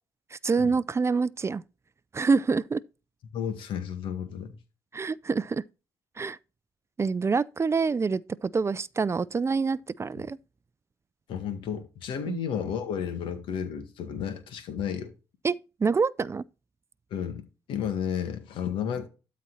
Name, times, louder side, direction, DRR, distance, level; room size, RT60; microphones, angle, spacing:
voice 1, 0.3-1.6 2.1-2.8 4.9-5.6 6.2-6.4 7.0-10.4 12.3-12.4 15.4-15.5 15.8-16.4, right 4 dB, 30° right, 0.5 m, -26 dB
voice 2, 3.3-4.6 11.3-15.1 17.1-17.4 17.7-19.1, left 8 dB, 75° left, 1.9 m, -32 dB
12.5 x 4.2 x 4.2 m
supercardioid pair, 60°, 9 cm